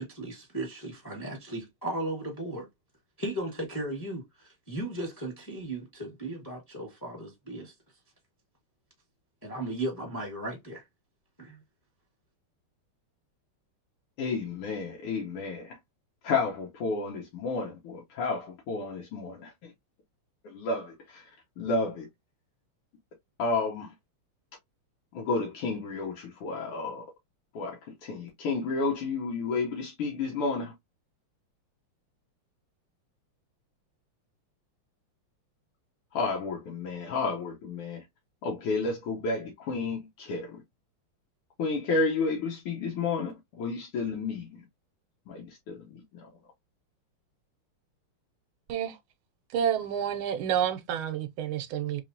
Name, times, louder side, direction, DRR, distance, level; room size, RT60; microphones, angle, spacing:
voice 1, 0.0-2.7 3.2-7.7 9.4-10.8 11.4-11.6, right 1 dB, 15° left, 1.0 m, -36 dB
voice 2, 14.2-15.8 16.2-19.7 20.4-21.3 21.6-22.1 23.4-23.9 25.1-27.1 27.5-30.7 36.1-38.0 38.4-40.6 41.6-44.6 45.3-46.3, left 3 dB, 85° left, 1.9 m, -31 dB
voice 3, 49.5-52.0, right 9 dB, 75° right, 1.4 m, -29 dB
4.0 x 3.1 x 2.6 m
omnidirectional pair, 2.4 m